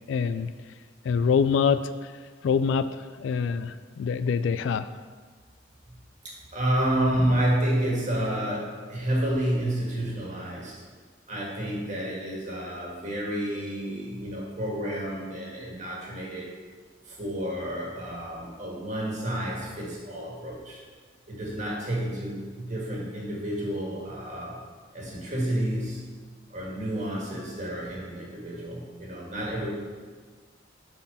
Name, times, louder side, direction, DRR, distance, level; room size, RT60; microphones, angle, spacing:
voice 1, 0.1-0.5 1.0-2.1 2.4-4.9, left 6 dB, 70° left, 13 dB, 0.3 m, -25 dB
voice 2, 6.2-10.8 11.3-16.5 17.1-20.8 21.3-24.6 24.9-26.0 26.5-29.7, right 1 dB, 40° right, -4 dB, 1.9 m, -30 dB
7.4 x 4.6 x 5.6 m, 1.5 s
head